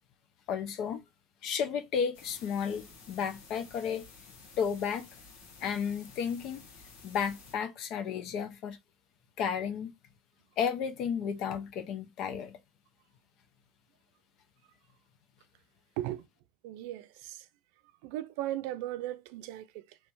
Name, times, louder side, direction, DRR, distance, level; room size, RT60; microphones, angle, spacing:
voice 1, 0.5-1.0 1.4-4.0 4.6-5.1 5.6-6.6 7.0-8.8 9.4-9.9 10.6-12.6, left 7 dB, 45° left, 0.7 m, -33 dB
sound 1, 2.1-7.6, left 4 dB, 80° left, 1.4 m, -53 dB
voice 2, 16.6-17.5 18.0-20.0, right 14 dB, 75° right, 0.5 m, -37 dB
3.3 x 3.0 x 4.6 m
cardioid pair, 165°, 0 cm